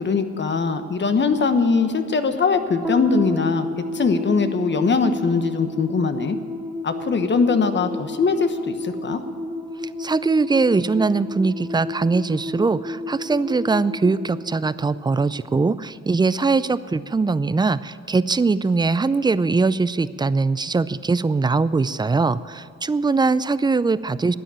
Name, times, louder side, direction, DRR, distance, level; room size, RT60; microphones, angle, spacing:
voice 1, 0.0-3.7 3.9-6.4 6.8-9.2, left 4 dB, 35° left, 9 dB, 1.2 m, -21 dB
sound 1, 2.8-15.4, left 2 dB, ahead, 2.0 m, -32 dB
voice 2, 9.8-24.4, right 4 dB, 15° right, 16 dB, 0.4 m, -21 dB
12.5 x 9.4 x 8.8 m, 2.5 s
cardioid pair, 90°, 30 cm